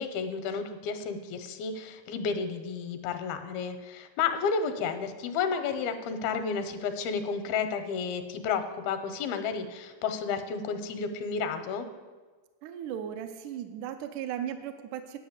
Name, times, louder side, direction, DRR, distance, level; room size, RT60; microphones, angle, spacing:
voice 1, 0.0-11.9, left 5 dB, 85° left, 9 dB, 2.7 m, -31 dB
voice 2, 12.6-15.2, right 9 dB, 85° right, 6 dB, 1.8 m, -36 dB
10.0 x 5.6 x 8.0 m, 1.3 s
omnidirectional pair, 4.3 m